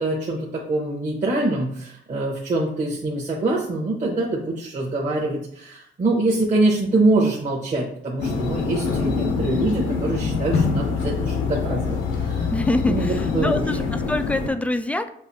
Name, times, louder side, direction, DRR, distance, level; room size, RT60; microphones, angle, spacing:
voice 1, 0.0-12.5 12.8-13.1 13.3-13.6, right 2 dB, 40° right, -5 dB, 1.1 m, -24 dB
sound 1, 8.2-14.5, left 5 dB, 80° left, 0.8 m, -24 dB
voice 2, 12.5-15.1, left 2 dB, 5° left, 9 dB, 0.3 m, -25 dB
6.9 x 2.6 x 2.7 m, 0.69 s
cardioid pair, 90°, 20 cm